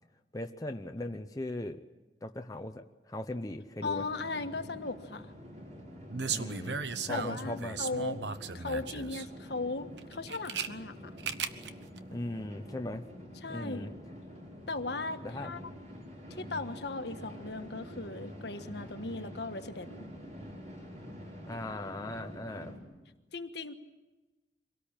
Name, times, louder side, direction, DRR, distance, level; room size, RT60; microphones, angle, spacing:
voice 1, 0.3-1.8 2.2-4.0 6.3-7.8 12.1-13.0 13.5-13.9 15.2-15.5 21.5-22.8, left 1 dB, 20° left, 5 dB, 0.8 m, -39 dB
voice 2, 3.8-5.3 7.1-8.2 8.5-11.1 13.4-13.9 14.7-15.7 16.3-20.1 23.3-23.8, left 3 dB, 70° left, 7 dB, 1.4 m, -37 dB
sound 1, 3.8-22.8, equal, 40° right, 5.6 m, -47 dB
sound 2, 6.1-9.3 10.0-10.7 11.2-11.7 12.0-12.1, right 6 dB, 80° right, 1.0 m, -36 dB
24.5 x 18.0 x 8.9 m, 1.1 s
head